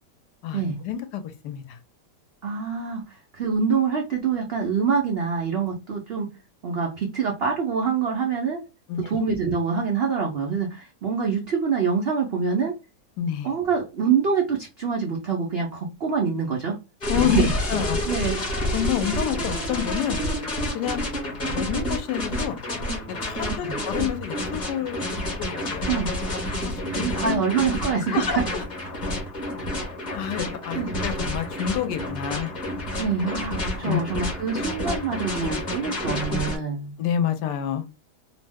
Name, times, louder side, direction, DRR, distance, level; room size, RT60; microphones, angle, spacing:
voice 1, 0.4-1.6 8.9-9.0 13.2-13.5 17.1-17.4 17.7-18.0 18.7-20.2 20.7-21.0 21.5-22.6 23.2-24.9 25.5-25.9 26.6-27.4 28.1-28.4 30.2-32.5 33.9-34.0 37.0-37.9, left 10 dB, 85° left, 1.2 m, -28 dB
voice 2, 2.4-6.3 6.6-8.6 9.0-12.7 13.4-16.8 17.1-17.8 18.1-18.4 23.6-23.8 25.9-26.1 26.9-28.5 30.7-30.9 33.0-36.9, right 6 dB, 75° right, 0.5 m, -25 dB
sound 1, 17.0-36.6, left 1 dB, 30° left, 0.9 m, -29 dB
2.9 x 2.1 x 3.4 m
omnidirectional pair, 1.8 m